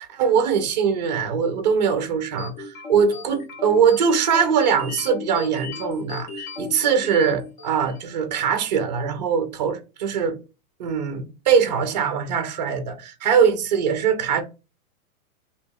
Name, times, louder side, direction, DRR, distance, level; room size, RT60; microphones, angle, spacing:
voice 1, 0.0-10.4 10.8-14.4, right 6 dB, 30° right, 0.5 m, -22 dB
sound 1, 2.4-8.1, left 4 dB, 35° left, 0.6 m, -36 dB
4.5 x 2.8 x 2.2 m
hypercardioid pair, 165°, 44 cm